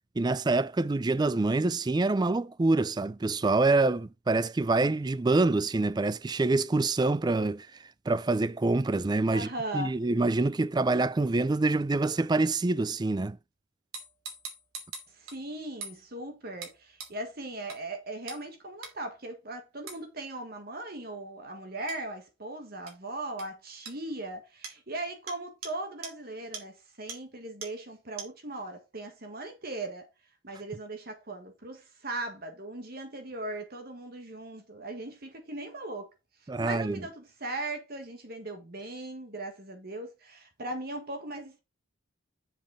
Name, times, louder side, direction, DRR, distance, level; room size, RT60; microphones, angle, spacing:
voice 1, 0.2-7.7 8.1-13.4 36.5-37.0, right 3 dB, 20° right, 0.3 m, -26 dB
voice 2, 9.3-10.0 15.1-30.1 30.4-36.1 36.4-41.6, right 2 dB, 50° right, 1.7 m, -39 dB
sound 1, 13.9-15.4 15.8-16.0 16.6-16.7 17.0-17.1 17.7-17.8 18.3-18.4 18.8-18.9 19.9-20.0 21.9-22.0 22.9-23.0 23.4-23.5 23.9-24.0 24.6-24.8 25.3-25.4 25.6-25.7 26.0-26.1 26.5-26.6 27.1-27.2 27.6-27.7 28.2-28.3, right 5 dB, 85° right, 2.9 m, -41 dB
7.4 x 5.3 x 4.9 m
head